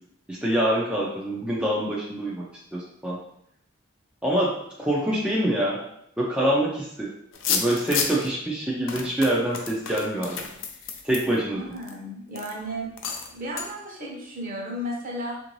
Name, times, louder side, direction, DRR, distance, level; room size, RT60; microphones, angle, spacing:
voice 1, 0.3-2.4 2.7-3.2 4.2-4.5 4.8-5.8 6.2-7.1 7.5-10.3 11.0-11.6, right 1 dB, 5° right, -5 dB, 0.4 m, -25 dB
sound 1, 7.3-8.3 8.9-11.9 12.3-12.5 13.0-13.3 13.6-13.7, left 6 dB, 80° left, 0.5 m, -30 dB
voice 2, 11.2-12.9 13.3-15.3, equal, 45° right, -2 dB, 0.9 m, -34 dB
3.6 x 2.6 x 3.0 m, 0.73 s
head